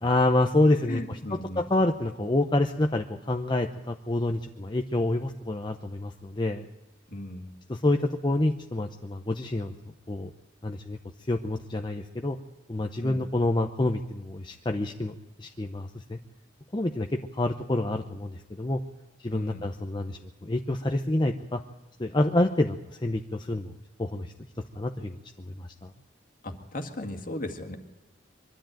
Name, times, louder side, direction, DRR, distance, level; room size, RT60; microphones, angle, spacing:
voice 1, 0.0-6.6 7.7-9.7 10.1-10.3 10.6-11.0 11.3-12.4 12.7-16.2 16.7-18.8 19.2-21.6 22.0-23.7 24.0-24.3 24.7-25.2 25.6-25.9, left 2 dB, 25° left, 4 dB, 0.8 m, -27 dB
voice 2, 0.9-1.6 7.1-7.5 13.0-13.3 19.3-19.7 26.4-27.8, left 1 dB, 45° left, 5 dB, 2.0 m, -37 dB
23.0 x 13.0 x 9.1 m, 1.0 s
head